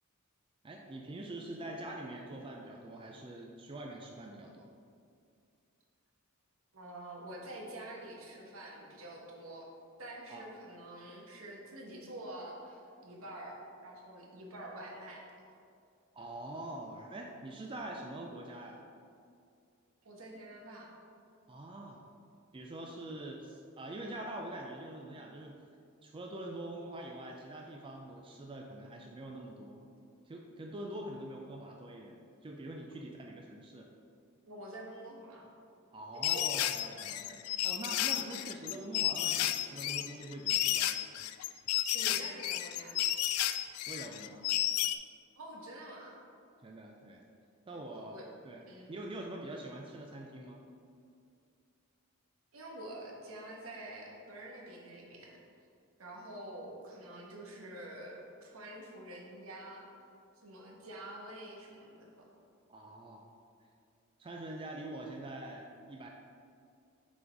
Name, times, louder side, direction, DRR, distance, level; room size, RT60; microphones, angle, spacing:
voice 1, 0.6-4.7 10.3-10.5 16.1-18.8 21.5-22.0 22.5-25.5 26.0-29.9 30.3-33.9 35.9-41.0 43.9-44.5 46.6-47.2 47.7-50.6 62.7-63.3 64.2-66.1, right 1 dB, 25° right, 0 dB, 0.4 m, -44 dB
voice 2, 6.7-9.7 10.0-15.2 20.0-20.9 31.1-31.2 34.5-35.5 41.9-43.0 45.4-46.2 47.7-48.2 48.7-48.9 52.5-55.4 56.0-59.9 60.4-62.3, right 1 dB, 70° right, -1 dB, 1.2 m, -47 dB
sound 1, 36.2-45.0, left 13 dB, 85° left, 0.3 m, -32 dB
6.0 x 3.9 x 4.6 m, 2.4 s
head